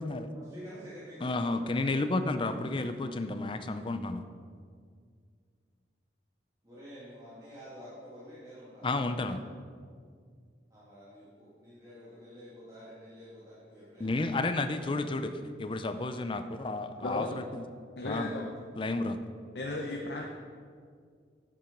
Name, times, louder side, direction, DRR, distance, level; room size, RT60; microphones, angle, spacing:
voice 1, 0.3-1.6 6.6-9.3 10.7-14.8, equal, 20° right, -10 dB, 1.8 m, -49 dB
voice 2, 1.2-4.2 8.8-9.4 14.0-17.6 18.0-18.3 18.8-19.2, left 2 dB, 30° left, 9 dB, 0.5 m, -32 dB
voice 3, 18.0-18.5 19.5-20.3, left 2 dB, 65° left, 0 dB, 0.8 m, -35 dB
8.7 x 7.4 x 5.2 m, 2.1 s
head